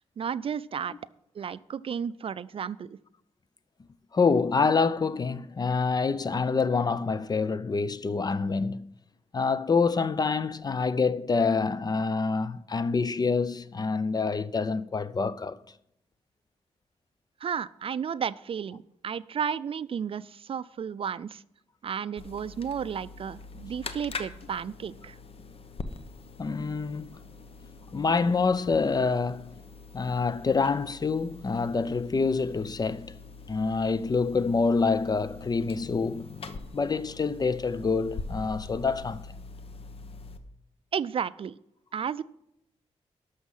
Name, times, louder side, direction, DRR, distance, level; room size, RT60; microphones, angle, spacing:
voice 1, 0.2-0.9 1.4-3.0 17.4-21.4 21.8-25.2 40.9-41.6 41.9-42.2, right 7 dB, 50° right, 0.3 m, -33 dB
voice 2, 4.1-8.9 9.3-15.6 23.6-23.7 26.4-27.2 27.9-29.5 29.9-33.1 33.5-36.3 36.7-39.3, left 4 dB, 35° left, 0.5 m, -26 dB
sound 1, 22.2-40.4, left 4 dB, 55° left, 0.9 m, -43 dB
12.0 x 6.4 x 5.5 m
cardioid pair, 75°, 12 cm